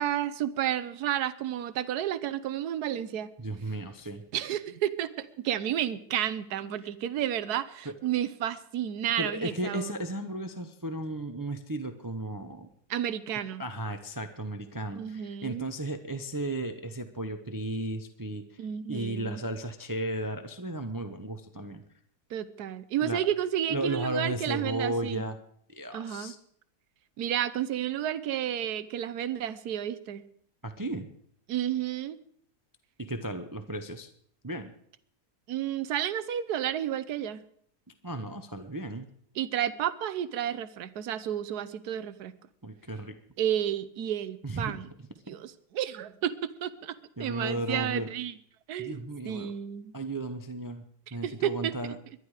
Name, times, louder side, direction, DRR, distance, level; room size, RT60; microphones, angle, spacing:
voice 1, 0.0-3.3 4.3-10.0 12.9-13.6 14.9-15.6 18.6-19.4 22.3-25.2 25.9-26.3 27.2-30.2 31.5-32.2 35.5-37.4 39.4-42.3 43.4-44.9 45.3-48.3 48.7-49.9 51.2-51.9, right 10 dB, 75° right, 15 dB, 1.3 m, -31 dB
voice 2, 3.4-4.2 7.8-7.9 9.2-12.7 13.6-21.8 23.0-23.2 23.7-25.4 25.7-26.4 30.6-31.1 33.0-34.1 34.4-34.7 38.0-39.1 42.6-43.1 44.4-44.8 47.2-48.1 48.8-49.5 49.9-50.8 51.1-52.0, right 1 dB, 20° right, 8 dB, 0.6 m, -34 dB
22.5 x 11.0 x 4.9 m, 0.64 s
omnidirectional pair, 1.7 m